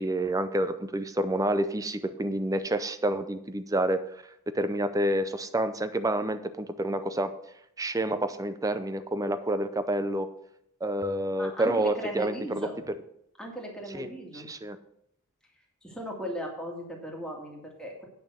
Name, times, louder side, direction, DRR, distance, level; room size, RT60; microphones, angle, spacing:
voice 1, 0.0-4.0 4.5-7.3 7.8-10.3 10.8-12.7 13.9-14.1 14.5-14.8, right 1 dB, 15° right, 11 dB, 0.6 m, -28 dB
voice 2, 11.4-12.8 13.4-14.5 15.8-18.1, equal, 5° left, -2 dB, 2.2 m, -37 dB
9.1 x 6.2 x 6.8 m, 0.73 s
head